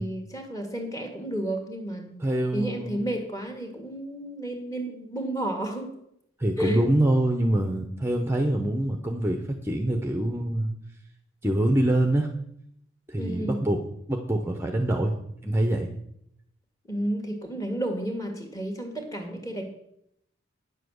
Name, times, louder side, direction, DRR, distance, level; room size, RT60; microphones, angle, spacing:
voice 1, 0.0-2.2 2.5-5.9 6.6-6.8 13.2-13.6 16.9-19.6, right 1 dB, 15° left, 3 dB, 1.9 m, -32 dB
voice 2, 2.2-3.0 6.4-10.7 11.4-12.3 13.1-13.8 14.1-15.1 15.4-15.9, right 1 dB, 10° right, 4 dB, 0.8 m, -25 dB
9.9 x 7.5 x 6.4 m, 0.74 s
head